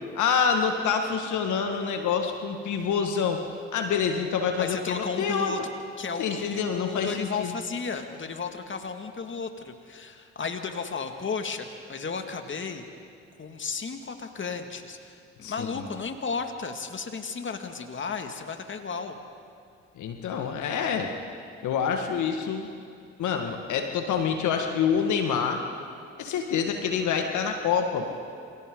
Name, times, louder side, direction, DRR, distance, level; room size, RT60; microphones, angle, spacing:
voice 1, 0.2-3.4 3.7-5.7 6.2-7.5 15.4-15.9 20.0-21.1 21.6-22.7 23.2-25.6 26.2-28.1, left 6 dB, 65° left, 4 dB, 1.9 m, -27 dB
voice 2, 4.6-12.8 13.4-19.2, left 5 dB, 35° left, 5 dB, 2.2 m, -34 dB
28.0 x 26.5 x 3.9 m, 2.4 s
hypercardioid pair, 45°, 33 cm